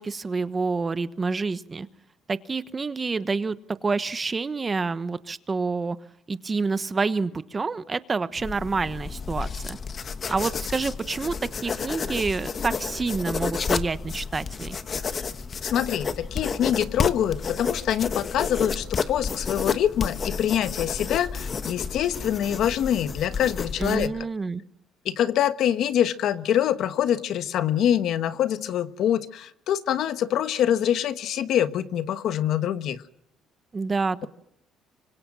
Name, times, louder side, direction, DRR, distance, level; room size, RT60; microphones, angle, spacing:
voice 1, 0.0-1.9 2.3-3.6 3.8-6.0 6.3-9.8 10.3-11.3 11.6-14.8 23.8-24.6 33.7-34.3, right 4 dB, 25° right, 13 dB, 1.1 m, -28 dB
sound 1, 8.4-24.1, left 5 dB, 35° left, 1.3 m, -31 dB
voice 2, 15.6-24.2 25.0-33.0, left 10 dB, 65° left, 12 dB, 1.3 m, -25 dB
26.0 x 24.5 x 6.2 m, 0.78 s
cardioid pair, 125°, 0 cm